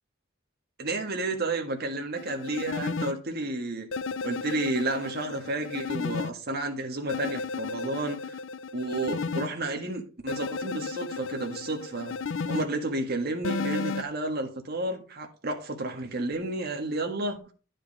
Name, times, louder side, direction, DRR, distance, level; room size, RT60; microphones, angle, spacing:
voice 1, 0.8-3.9 4.2-8.4 8.7-12.2 12.5-17.5, right 2 dB, 55° right, 1.6 m, -31 dB
sound 1, 2.2-3.1 3.9-6.3 7.1-9.5 10.3-12.7 13.4-14.0, left 4 dB, 70° left, 0.5 m, -33 dB
11.0 x 5.0 x 4.9 m
head